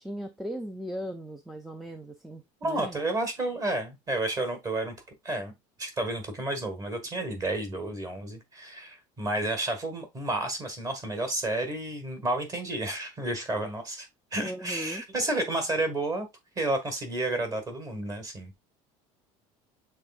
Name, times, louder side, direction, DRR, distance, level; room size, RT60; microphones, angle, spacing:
voice 1, 0.0-3.1 14.4-15.0, equal, ahead, 0.4 m, -38 dB
voice 2, 2.6-4.9 5.2-5.5 5.8-14.1 14.3-16.3 16.5-18.5, right 2 dB, 25° right, 1.4 m, -31 dB
6.6 x 3.4 x 2.4 m
cardioid pair, 145°, 13 cm